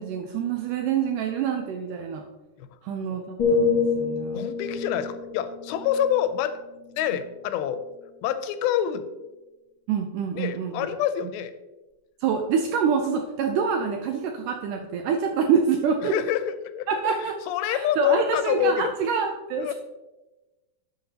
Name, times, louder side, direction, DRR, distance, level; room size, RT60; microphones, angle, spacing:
voice 1, 0.0-2.2 2.8-4.5 9.9-10.9 12.2-16.1 16.9-17.4 17.7-19.7, right 6 dB, 80° right, 4 dB, 1.9 m, -26 dB
sound 1, 3.4-7.3 7.8-8.1, left 4 dB, 50° left, 1.6 m, -28 dB
voice 2, 4.3-6.6 7.0-7.8 8.2-9.1 10.3-11.5 16.0-18.9 19.6-19.7, left 10 dB, 85° left, 11 dB, 2.5 m, -27 dB
12.0 x 5.6 x 2.8 m, 1.1 s
omnidirectional pair, 4.3 m